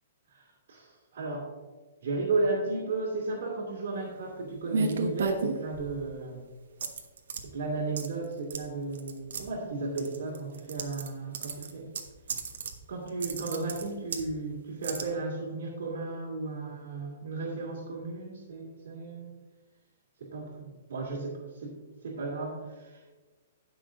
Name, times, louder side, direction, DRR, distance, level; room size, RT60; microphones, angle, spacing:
voice 1, 0.3-1.5 2.0-6.4 7.4-11.9 12.9-19.3 20.2-21.7 22.0-23.0, right 3 dB, 60° right, -5 dB, 2.5 m, -34 dB
sound 1, 4.7-6.0 6.8-7.4 8.0-8.2 8.5-8.6 8.9-9.4 10.0-11.1 11.3-12.8 13.1-14.3 14.8-15.0, right 4 dB, 80° right, 1.2 m, -32 dB
16.5 x 6.1 x 2.7 m, 1.3 s
hypercardioid pair, 170°, 0 cm